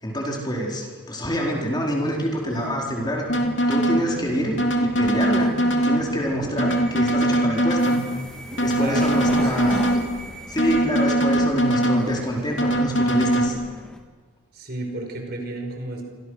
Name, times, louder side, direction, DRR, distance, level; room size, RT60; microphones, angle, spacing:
voice 1, 0.0-3.3 3.7-5.6 5.8-8.0 8.6-9.8 10.5-13.6, equal, 20° left, -1 dB, 4.5 m, -26 dB
sound 1, 2.0-14.0, equal, 5° left, 2.6 m, -39 dB
sound 2, 3.3-4.0 4.6-6.0 6.6-8.0 8.6-10.0 10.6-12.0 12.6-13.5, right 1 dB, 65° left, 3.0 m, -21 dB
sound 3, 4.3-4.6 5.0-5.3 5.7-5.9 6.4-6.6 7.1-7.3 7.8-8.0 8.5-8.7 9.2-9.3 9.9-10.1 10.6-10.8 11.3-11.5 11.8-12.2 12.7-12.9 13.5-13.6, equal, 30° right, 4.1 m, -39 dB
voice 2, 8.8-9.9 14.5-16.0, right 1 dB, 50° right, 3 dB, 5.2 m, -32 dB
29.5 x 26.0 x 6.6 m, 1.5 s
head